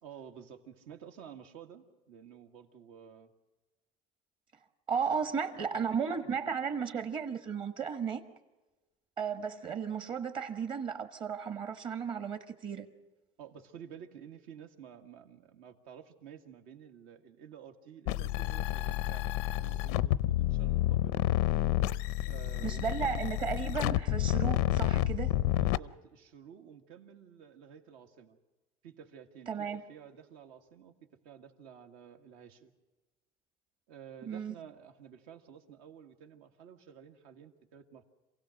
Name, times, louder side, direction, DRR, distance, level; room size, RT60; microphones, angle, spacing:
voice 1, 0.0-3.3 5.5-6.0 6.2-6.4 13.4-21.2 22.2-23.3 25.5-28.4 28.8-30.9 31.2-32.7 33.9-38.0, right 8 dB, 80° right, 1.9 m, -52 dB
voice 2, 4.9-8.2 9.2-12.9 22.6-25.3 29.5-29.8 34.3-34.5, right 6 dB, 35° right, 1.4 m, -34 dB
sound 1, 18.1-25.8, left 14 dB, 90° left, 0.6 m, -29 dB
27.0 x 16.5 x 6.5 m
cardioid pair, 155°, 14 cm